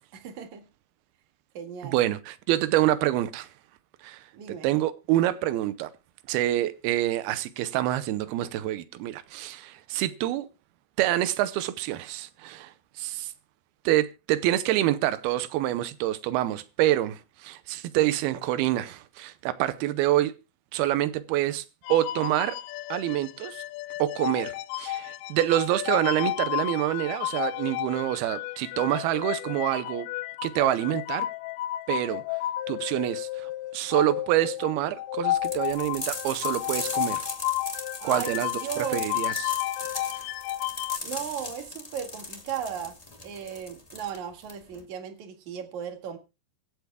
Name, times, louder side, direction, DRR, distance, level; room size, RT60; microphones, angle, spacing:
voice 1, 0.1-0.6 1.5-2.0 4.3-4.7 38.0-39.0 41.0-42.9 43.2-46.2, right 8 dB, 55° right, 3.0 m, -36 dB
voice 2, 1.8-3.5 4.0-5.9 6.3-10.5 11.0-13.3 13.9-20.3 20.7-21.6 21.9-22.6 22.9-23.6 24.0-24.5 24.8-30.1 30.4-31.3 31.9-32.2 32.7-37.3 38.0-38.5 38.8-39.5, right 14 dB, 90° right, 2.7 m, -26 dB
sound 1, 21.8-41.0, left 15 dB, 85° left, 2.6 m, -32 dB
sound 2, 35.4-44.8, left 2 dB, 15° left, 1.2 m, -38 dB
24.5 x 8.2 x 2.2 m
omnidirectional pair, 4.3 m